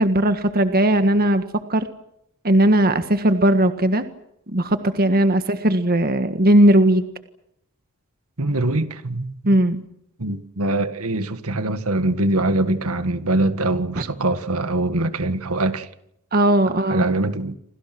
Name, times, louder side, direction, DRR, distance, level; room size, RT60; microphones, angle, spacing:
voice 1, 0.0-1.4 1.7-1.8 2.4-4.0 4.5-7.0 9.5-9.8 16.3-17.1, right 1 dB, 45° right, 1.6 m, -17 dB
voice 2, 8.4-9.4 10.2-15.9 16.6-17.6, right 2 dB, 70° right, 2.0 m, -23 dB
29.0 x 26.5 x 6.2 m
head